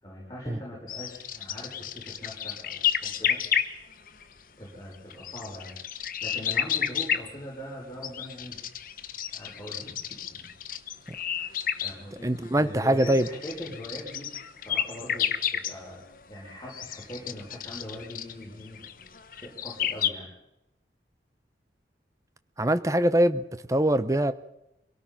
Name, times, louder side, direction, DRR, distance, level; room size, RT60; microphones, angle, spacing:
voice 1, 0.0-3.4 4.6-5.8 6.2-8.6 9.2-10.0 10.3-10.5 11.8-12.3 12.6-14.3 14.6-18.8 19.4-20.3, equal, 20° left, -5 dB, 6.9 m, -41 dB
sound 1, 0.9-4.2 4.9-7.3 8.0-12.0 12.4-12.5 13.0-15.7 16.1-20.1, left 9 dB, 50° left, 1.1 m, -31 dB
voice 2, 12.2-13.3 22.6-24.3, right 1 dB, 20° right, 12 dB, 0.9 m, -23 dB
24.5 x 18.0 x 5.8 m, 0.85 s
head